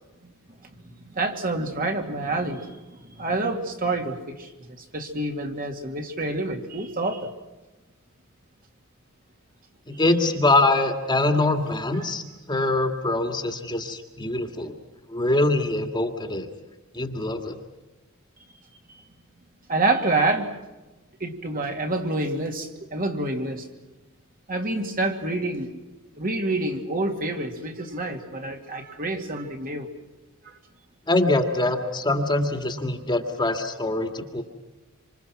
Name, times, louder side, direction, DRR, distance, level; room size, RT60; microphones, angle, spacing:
voice 1, 1.0-2.8 3.2-7.3 19.7-20.5 21.2-23.6 24.5-25.7 26.2-29.9 30.4-30.6, right 2 dB, 40° right, 3 dB, 2.5 m, -27 dB
voice 2, 9.9-14.8 15.1-16.5 16.9-17.6 31.1-34.4, left 2 dB, 20° left, 5 dB, 2.1 m, -24 dB
26.5 x 26.5 x 6.0 m, 1.1 s
head